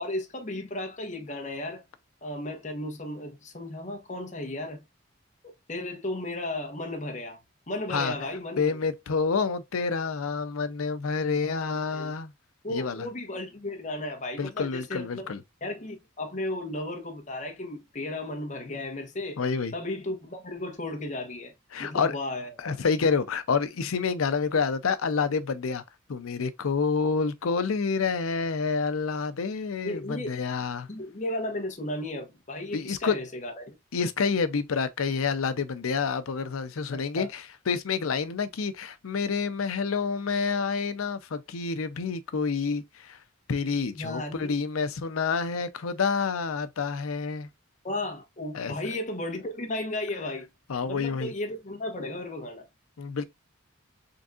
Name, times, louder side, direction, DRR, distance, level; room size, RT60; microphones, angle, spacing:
voice 1, 0.0-1.8 2.2-4.8 5.4-7.4 7.7-8.8 11.2-12.1 12.6-15.2 15.6-19.4 19.7-21.5 21.8-22.7 29.8-30.3 30.9-33.7 36.9-37.3 44.0-44.5 47.8-50.5 50.8-52.7, left 1 dB, 35° left, 1.0 m, -34 dB
voice 2, 8.6-12.3 12.7-13.0 14.4-15.4 19.4-19.7 21.7-22.2 22.6-25.8 26.1-30.9 32.7-33.1 33.9-43.2 43.5-47.5 48.5-48.7 50.7-51.3 53.0-53.2, left 5 dB, 85° left, 0.6 m, -28 dB
3.9 x 3.5 x 2.4 m
head